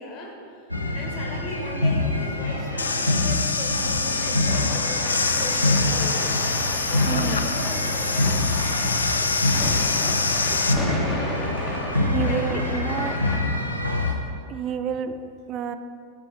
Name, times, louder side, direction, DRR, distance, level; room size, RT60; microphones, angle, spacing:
voice 1, 0.0-6.4 6.9-8.3 12.0-12.7, left 2 dB, 40° left, 1 dB, 1.3 m, -37 dB
sound 1, 0.7-14.1, left 2 dB, 90° right, 0.7 m, -26 dB
sound 2, 2.8-10.7, left 4 dB, 75° left, 0.3 m, -26 dB
sound 3, 4.0-13.4, left 1 dB, 10° left, 1.2 m, -34 dB
voice 2, 7.1-7.5 11.8-13.2 14.5-15.8, right 7 dB, 35° right, 11 dB, 0.3 m, -30 dB
5.8 x 4.6 x 6.4 m, 2.4 s
figure-of-eight pair, 90°, 0 cm